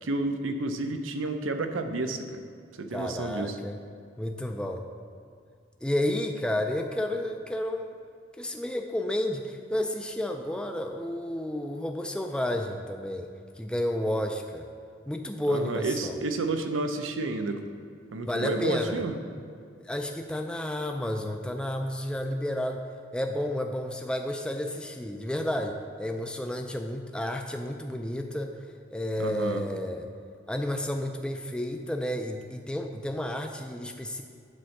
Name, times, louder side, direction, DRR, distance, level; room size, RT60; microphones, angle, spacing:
voice 1, 0.0-2.4 2.8-3.6 15.5-17.6 18.1-19.2 29.2-29.6, right 2 dB, 85° right, 7 dB, 0.7 m, -30 dB
voice 2, 2.9-3.8 4.2-4.8 5.8-7.9 8.4-13.3 13.6-14.7 15.1-16.2 18.3-19.0 19.8-22.8 23.1-28.5 28.9-30.1 30.5-34.2, left 1 dB, 5° left, 4 dB, 0.3 m, -31 dB
8.5 x 4.4 x 6.5 m, 2.3 s
head